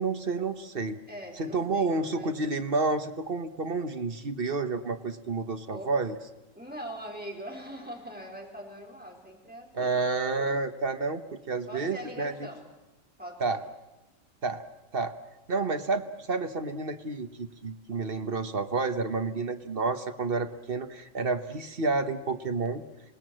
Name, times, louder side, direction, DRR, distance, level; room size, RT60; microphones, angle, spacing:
voice 1, 0.0-1.0 1.4-6.1 9.7-12.3 13.4-13.6 14.4-14.6 14.9-15.1 15.5-22.8, right 3 dB, 45° right, 8 dB, 1.3 m, -30 dB
voice 2, 1.1-2.4 5.7-5.9 6.5-10.0 11.7-12.7 13.2-13.6, equal, 5° right, -1 dB, 4.4 m, -42 dB
26.5 x 19.5 x 7.7 m, 1.0 s
omnidirectional pair, 1.4 m